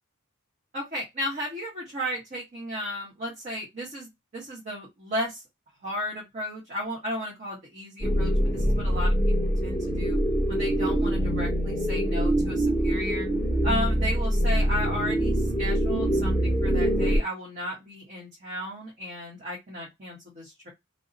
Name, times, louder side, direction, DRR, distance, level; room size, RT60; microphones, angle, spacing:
voice 1, 0.7-5.4 5.8-9.3 9.6-10.2 10.5-13.3 13.6-20.7, equal, 35° right, -4 dB, 1.0 m, -34 dB
sound 1, 8.0-17.2, right 1 dB, 5° right, 1.5 m, -24 dB
2.7 x 2.1 x 2.6 m, 0.18 s
head